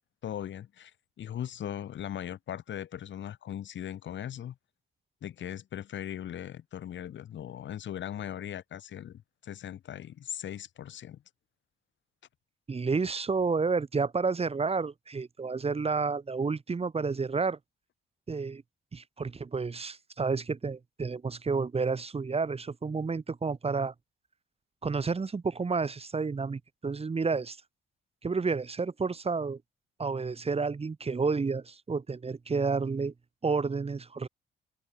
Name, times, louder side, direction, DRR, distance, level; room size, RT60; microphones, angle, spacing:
voice 1, 0.2-0.9 1.2-4.6 5.2-11.2, left 10 dB, 70° left, 7.5 m, -39 dB
voice 2, 12.7-17.6 18.3-18.6 18.9-23.9 24.8-27.6 28.2-29.6 30.0-33.1 33.4-34.3, right 4 dB, 30° right, 2.8 m, -30 dB
cardioid pair, 90°, 20 cm